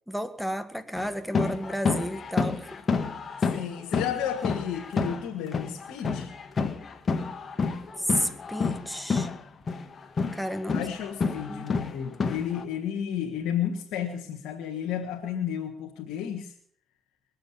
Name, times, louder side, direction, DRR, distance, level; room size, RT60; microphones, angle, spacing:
voice 1, 0.1-2.8 8.0-9.3 10.3-10.9 11.5-11.6, equal, ahead, 11 dB, 1.7 m, -32 dB
sound 1, 0.9-5.2 5.5-9.4 9.7-12.6, left 4 dB, 40° left, 1.6 m, -29 dB
voice 2, 3.4-6.3 10.7-16.5, left 9 dB, 80° left, 1 dB, 1.7 m, -32 dB
21.5 x 7.7 x 7.2 m, 0.62 s
supercardioid pair, 80°, 0 cm